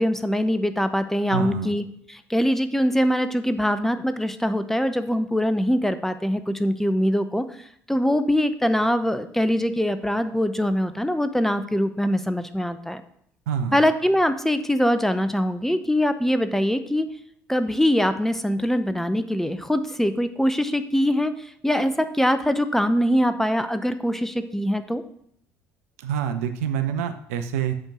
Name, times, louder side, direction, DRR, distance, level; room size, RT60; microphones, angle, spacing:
voice 1, 0.0-13.0 13.7-17.1 17.5-25.0, equal, 5° left, 10 dB, 0.7 m, -23 dB
voice 2, 1.3-1.7 13.5-13.8 26.0-27.7, right 8 dB, 75° right, 8 dB, 0.7 m, -26 dB
7.8 x 4.5 x 6.0 m, 0.69 s
figure-of-eight pair, 55°, 8 cm